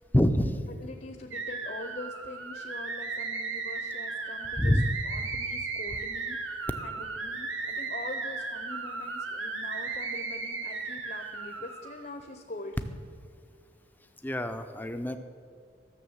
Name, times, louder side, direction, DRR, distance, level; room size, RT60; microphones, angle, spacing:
voice 1, 0.1-0.7 4.6-4.9 14.2-15.2, equal, 10° left, 8 dB, 0.5 m, -25 dB
voice 2, 0.8-4.8 5.0-6.4 6.8-13.0, left 2 dB, 45° left, 6 dB, 0.7 m, -43 dB
sound 1, 1.3-12.0, right 4 dB, 90° right, 1.3 m, -35 dB
12.5 x 6.8 x 7.2 m, 2.2 s
head